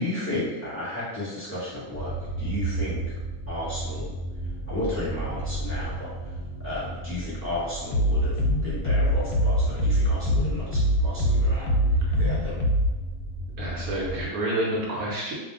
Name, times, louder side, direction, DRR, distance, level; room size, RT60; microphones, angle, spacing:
voice 1, 0.0-3.0 3.5-4.1 4.7-12.6, left 1 dB, 10° left, -9 dB, 0.9 m, -33 dB
sound 1, 1.9-14.3, right 2 dB, 90° left, 0.5 m, -33 dB
sound 2, 7.9-12.9, equal, 70° left, 1.0 m, -23 dB
voice 2, 13.6-15.3, right 1 dB, 70° right, -4 dB, 1.0 m, -28 dB
2.6 x 2.3 x 3.7 m, 1.2 s
omnidirectional pair, 1.7 m